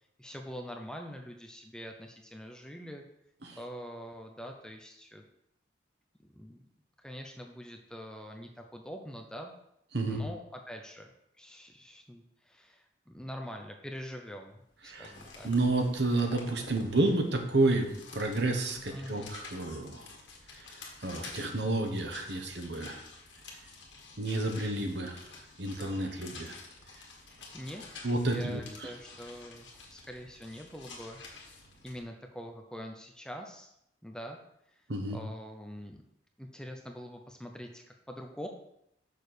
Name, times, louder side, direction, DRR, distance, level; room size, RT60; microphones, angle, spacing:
voice 1, 0.2-3.1 3.5-5.2 6.2-6.7 7.0-9.5 10.1-11.1 11.4-15.5 18.9-19.3 27.2-33.7 34.0-34.4 34.7-36.0 36.4-38.5, equal, 5° left, 3 dB, 0.6 m, -44 dB
sound 1, 14.7-32.0, left 3 dB, 70° left, 1.7 m, -50 dB
voice 2, 15.4-20.1 20.5-20.7 21.0-23.0 24.2-25.3 25.6-26.6 28.0-28.9 34.9-35.2, right 2 dB, 60° right, 4 dB, 1.2 m, -30 dB
6.6 x 4.5 x 6.6 m, 0.78 s
head